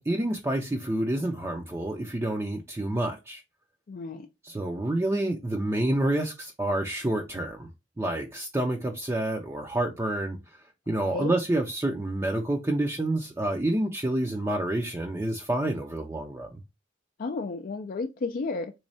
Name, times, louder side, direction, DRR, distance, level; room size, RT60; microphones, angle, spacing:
voice 1, 0.0-3.4 4.4-7.7 8.0-10.4 10.9-16.6, right 1 dB, 15° right, 0.4 m, -28 dB
voice 2, 3.9-4.3 11.0-11.3 17.2-18.7, left 3 dB, 50° left, 0.4 m, -32 dB
3.5 x 3.1 x 2.6 m
head